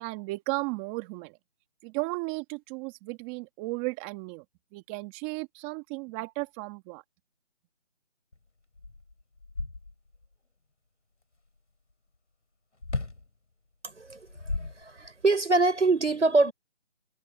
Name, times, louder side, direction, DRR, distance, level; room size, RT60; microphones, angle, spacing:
voice 1, 0.0-1.4 1.8-4.4 4.7-7.0, right 25 dB, 10° right, 2.0 m, -35 dB
sound 1, 8.3-8.4 8.8-10.3 12.8-13.3 14.1-15.3, left 3 dB, 80° left, 6.5 m, -35 dB
voice 2, 13.8-14.3 14.8-16.5, right 3 dB, 85° right, 5.6 m, -24 dB
figure-of-eight pair, 165°, 35 cm